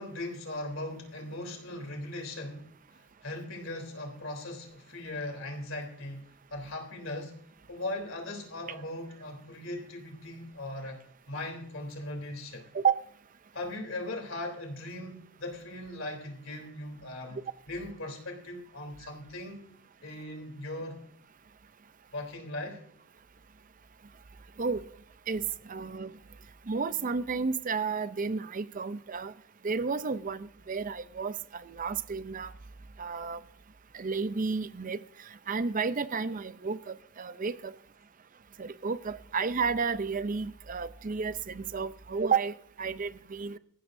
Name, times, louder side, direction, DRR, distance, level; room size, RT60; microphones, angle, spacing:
voice 1, 0.0-7.4 7.7-11.0 11.3-12.7 13.5-17.4 17.7-19.7 20.0-21.0 22.1-22.8, left 1 dB, 75° left, 3.4 m, -39 dB
voice 2, 25.3-26.1 26.7-29.3 29.6-32.5 33.0-33.4 33.9-35.0 35.5-37.7 38.6-43.6, right 5 dB, 40° right, 0.6 m, -32 dB
19.0 x 15.0 x 2.6 m
head